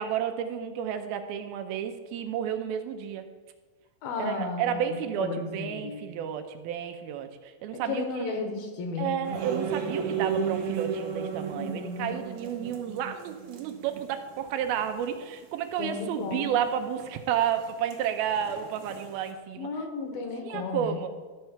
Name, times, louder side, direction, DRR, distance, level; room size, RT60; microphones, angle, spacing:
voice 1, 0.0-3.3 4.2-8.3 9.0-19.7 20.4-21.1, right 9 dB, 85° right, 7 dB, 2.5 m, -31 dB
voice 2, 4.0-6.1 7.7-9.4 11.5-12.2 15.8-16.6 19.6-21.1, left 4 dB, 75° left, 4 dB, 3.0 m, -34 dB
sound 1, 9.2-14.1 14.3-14.4 14.7-14.8 16.6-17.1 17.3-19.3, right 6 dB, 70° right, 1.4 m, -34 dB
13.0 x 4.5 x 7.2 m, 1.4 s
omnidirectional pair, 4.4 m